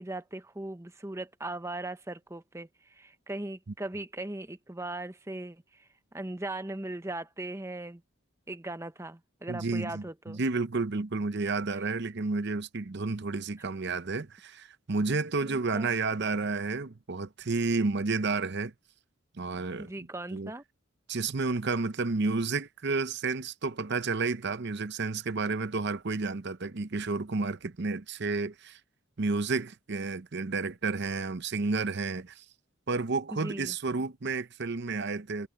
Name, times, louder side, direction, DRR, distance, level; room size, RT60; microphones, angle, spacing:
voice 1, 0.0-8.0 8.5-10.4 15.4-15.9 19.8-20.6 33.3-33.7, right 2 dB, 15° right, 0.8 m, -39 dB
voice 2, 9.5-18.7 19.3-19.9 20.3-20.5 21.1-28.8 29.2-32.4 32.9-35.5, right 3 dB, 50° right, 0.7 m, -31 dB
head